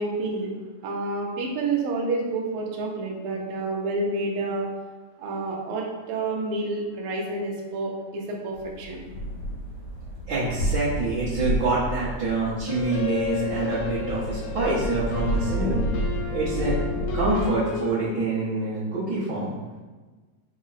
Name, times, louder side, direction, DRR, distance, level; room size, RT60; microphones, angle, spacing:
voice 1, 0.0-4.7 5.2-9.0, right 3 dB, 90° right, -1 dB, 1.2 m, -29 dB
sound 1, 8.5-17.5, right 1 dB, 70° left, 1.0 m, -30 dB
voice 2, 10.3-15.9 16.3-16.7 17.1-19.5, right 3 dB, 65° right, -11 dB, 1.1 m, -26 dB
sound 2, 12.7-17.9, left 7 dB, 85° left, 2.0 m, -32 dB
4.8 x 2.1 x 4.0 m, 1.3 s
omnidirectional pair, 3.4 m